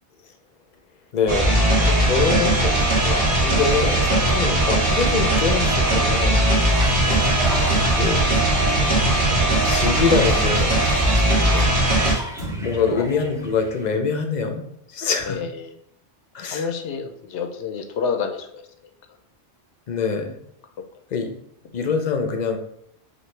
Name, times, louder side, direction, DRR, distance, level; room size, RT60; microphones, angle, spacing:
voice 1, 1.1-6.4 7.9-8.2 9.7-10.8 12.6-14.6 14.9-15.4 16.3-16.7 19.9-20.3 21.1-21.3 21.7-22.6, left 5 dB, 50° left, 6 dB, 0.6 m, -24 dB
sound 1, 1.3-12.1, right 1 dB, 50° right, 1.9 m, -19 dB
sound 2, 6.5-13.9, equal, 5° right, 0.3 m, -37 dB
sound 3, 7.0-13.8, right 2 dB, 75° right, 1.9 m, -32 dB
voice 2, 15.3-15.7 16.4-18.6, left 6 dB, 75° left, 6 dB, 0.9 m, -29 dB
6.1 x 2.6 x 3.2 m, 0.72 s
omnidirectional pair, 1.2 m